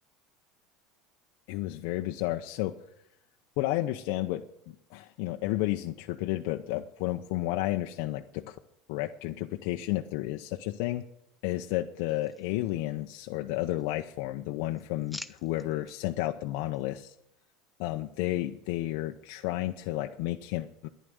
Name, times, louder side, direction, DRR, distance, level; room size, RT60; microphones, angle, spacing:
voice 1, 1.5-2.7 3.6-4.4 4.9-8.6 8.9-11.0 11.4-17.1 17.8-20.9, left 16 dB, 70° left, 4 dB, 0.7 m, -32 dB
sound 1, 12.1-13.2 13.5-14.2 14.5-16.0 16.5-16.8, left 1 dB, 5° left, 0.7 m, -48 dB
11.0 x 10.5 x 7.9 m, 0.79 s
supercardioid pair, 105°, 0 cm